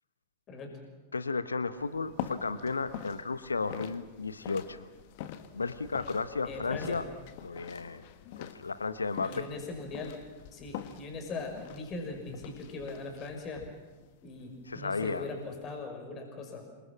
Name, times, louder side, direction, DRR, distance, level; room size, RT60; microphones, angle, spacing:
voice 1, 0.5-0.8 6.4-7.0 9.2-10.2 10.5-13.6 14.2-16.6, left 3 dB, 30° left, 3 dB, 6.0 m, -40 dB
voice 2, 1.1-4.9 5.5-7.1 7.4-8.0 8.4-9.5 14.7-15.3, left 4 dB, 80° left, 12 dB, 1.1 m, -33 dB
sound 1, 1.8-15.8, left 10 dB, 50° left, 1.7 m, -45 dB
27.5 x 23.5 x 7.5 m, 1.2 s
figure-of-eight pair, 95°, 0 cm